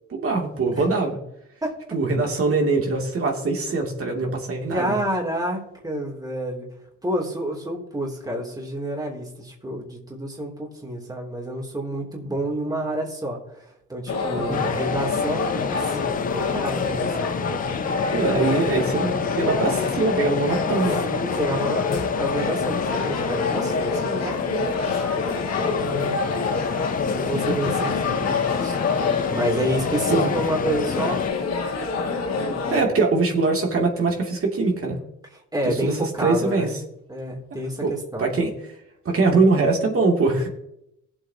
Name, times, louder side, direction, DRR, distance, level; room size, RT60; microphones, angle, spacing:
voice 1, 0.1-1.2 1.9-4.9 12.2-12.3 14.4-14.6 18.1-21.0 27.3-27.6 30.1-30.3 32.7-35.0 35.7-36.7 37.8-37.9 38.2-38.8 39.0-40.5, right 3 dB, 45° right, 1 dB, 2.8 m, -22 dB
voice 2, 4.7-6.7 7.0-17.6 21.0-26.7 27.1-28.8 29.3-31.5 32.0-32.9 35.5-36.7 37.1-38.3, right 1 dB, 10° right, -1 dB, 3.1 m, -29 dB
sound 1, 14.1-32.8, left 4 dB, 60° left, 2.3 m, -26 dB
sound 2, 14.5-31.3, left 7 dB, 30° left, 0.4 m, -31 dB
18.0 x 7.9 x 2.9 m, 0.78 s
cardioid pair, 90°, 30 cm